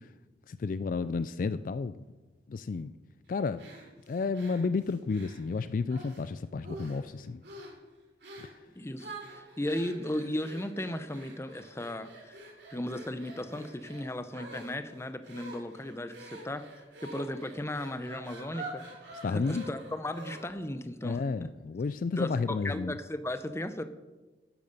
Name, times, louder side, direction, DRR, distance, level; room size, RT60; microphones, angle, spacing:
voice 1, 0.5-2.0 2.5-2.9 3.3-3.7 4.1-7.4 19.2-19.6 21.0-22.9, left 4 dB, 50° left, 14 dB, 0.3 m, -31 dB
sound 1, 3.6-6.2 6.6-7.1 7.4-7.8 8.2-8.6 9.0-20.7, right 2 dB, 70° right, 3.1 m, -47 dB
voice 2, 8.8-12.4 12.7-16.6 17.0-18.8 19.3-21.5 22.2-23.8, left 1 dB, 15° left, 10 dB, 0.7 m, -36 dB
11.0 x 9.0 x 6.8 m, 1.2 s
head